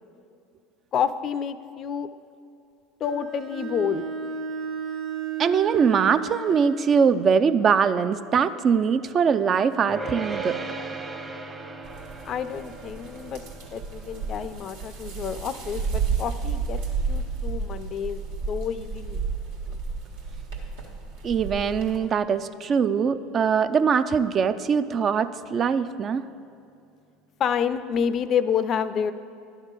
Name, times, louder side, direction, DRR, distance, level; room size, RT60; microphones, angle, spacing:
voice 1, 0.9-2.1 3.0-4.0 12.2-13.4 13.7-16.8 17.1-18.2 18.5-19.2 27.4-29.1, left 7 dB, 45° left, 13 dB, 0.4 m, -28 dB
Bowed string instrument, 3.0-7.0, right 6 dB, 55° right, 0.9 m, -33 dB
voice 2, 5.4-10.6 21.2-26.2, right 6 dB, 40° right, 12 dB, 0.3 m, -22 dB
sound 1, 9.9-21.2, right 3 dB, 20° right, 0.8 m, -40 dB
sound 2, 11.8-22.0, right 5 dB, 85° right, 1.5 m, -32 dB
11.0 x 3.6 x 6.6 m, 2.5 s
hypercardioid pair, 90°, 0 cm